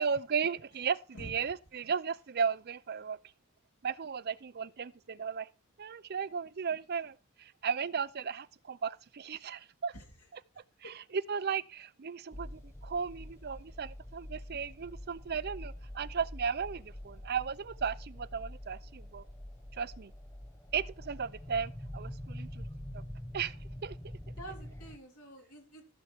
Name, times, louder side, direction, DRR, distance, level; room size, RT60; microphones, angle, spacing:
voice 1, 0.0-3.2 3.8-5.5 5.8-9.9 10.8-10.9 11.3-19.2 19.8-20.1 20.7-22.6 22.9-23.0 23.3-23.6 23.8-24.0, right 6 dB, 45° right, 0.5 m, -35 dB
voice 2, 9.9-10.3 10.5-11.0 24.4-25.8, right 1 dB, 90° left, 3.5 m, -48 dB
sound 1, 12.3-25.0, left 1 dB, 10° left, 0.9 m, -45 dB
15.0 x 6.4 x 4.6 m
head